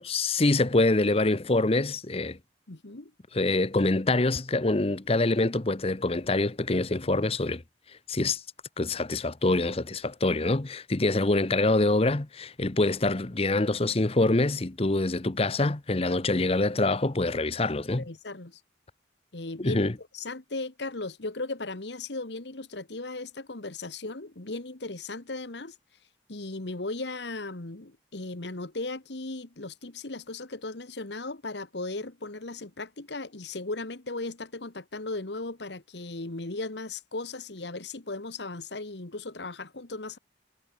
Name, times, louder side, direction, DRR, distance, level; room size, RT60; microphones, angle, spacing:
voice 1, 0.0-2.4 3.3-7.6 8.1-8.4 8.8-18.0 19.6-19.9, left 2 dB, 35° left, 0.9 m, -25 dB
voice 2, 2.7-3.1 18.0-18.6 19.3-25.7 26.3-40.2, left 2 dB, 70° left, 1.6 m, -37 dB
head